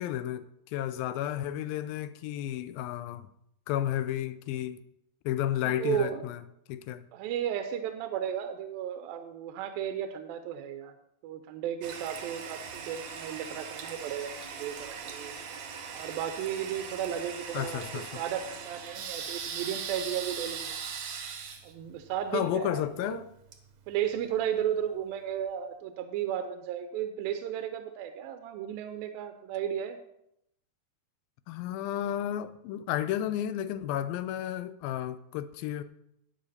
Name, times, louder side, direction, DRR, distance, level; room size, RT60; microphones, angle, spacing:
voice 1, 0.0-3.3 3.7-4.8 5.3-6.4 6.7-7.0 17.5-18.2 22.3-23.3 31.5-35.8, left 11 dB, 85° left, 2.4 m, -32 dB
voice 2, 5.8-6.2 7.1-11.0 11.2-15.3 15.9-20.8 21.6-23.2 23.9-30.0, right 10 dB, 85° right, 2.5 m, -34 dB
Toilet flush, 11.8-24.5, right 6 dB, 65° right, 1.9 m, -40 dB
11.5 x 9.2 x 4.1 m
omnidirectional pair, 4.2 m